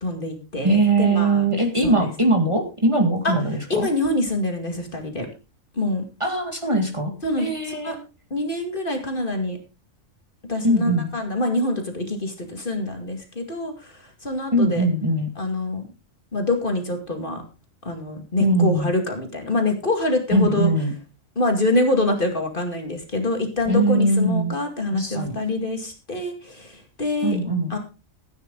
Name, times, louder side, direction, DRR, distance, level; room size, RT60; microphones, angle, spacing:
voice 1, 0.0-1.4 1.8-2.1 3.2-3.3 3.7-5.3 5.7-6.0 7.2-8.0 8.3-9.6 10.5-14.9 15.4-15.9 16.3-17.4 17.8-20.7 21.4-27.4 27.7-27.8, left 2 dB, 40° left, 3 dB, 2.4 m, -25 dB
voice 2, 0.6-3.9 6.2-7.1 7.4-8.0 10.6-11.1 14.5-15.3 18.4-18.9 20.3-20.9 23.7-24.6 24.9-25.4 27.2-27.8, right 2 dB, 20° right, 2 dB, 2.1 m, -21 dB
14.5 x 9.6 x 3.9 m, 0.30 s
omnidirectional pair, 1.4 m